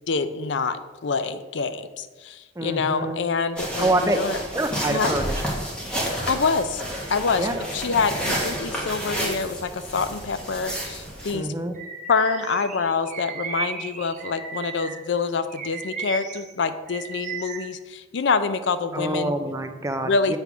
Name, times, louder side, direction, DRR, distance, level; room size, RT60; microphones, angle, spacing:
voice 1, 0.1-4.4 4.9-5.1 6.3-6.8 7.1-7.5 7.7-11.5 12.1-19.3 20.0-20.3, left 4 dB, 70° left, 11 dB, 0.5 m, -26 dB
voice 2, 2.6-3.2 3.8-4.2 4.5-5.4 7.4-7.6 11.3-11.8 18.9-20.4, right 2 dB, 15° right, 7 dB, 0.5 m, -26 dB
sound 1, 3.6-11.3, equal, 5° left, 1.4 m, -30 dB
Bird vocalization bird call bird song, 11.7-15.1 15.5-17.7, right 5 dB, 40° right, 1.0 m, -35 dB
7.9 x 3.5 x 6.0 m, 1.3 s
head